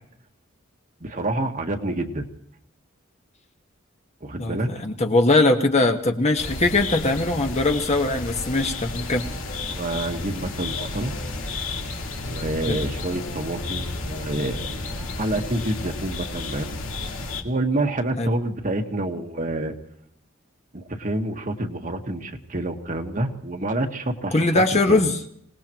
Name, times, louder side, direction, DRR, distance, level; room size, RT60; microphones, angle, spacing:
voice 1, 1.0-2.2 4.2-4.7 9.7-11.1 12.3-16.8 17.2-19.7 20.7-24.4 24.7-25.0, right 1 dB, 40° right, 4 dB, 1.5 m, -28 dB
voice 2, 4.4-9.2 12.7-12.8 18.2-18.3 24.3-25.2, left 2 dB, 35° left, 4 dB, 1.4 m, -21 dB
sound 1, 6.4-17.4, left 3 dB, 80° left, 2.2 m, -32 dB
26.0 x 18.5 x 3.0 m, 0.71 s
head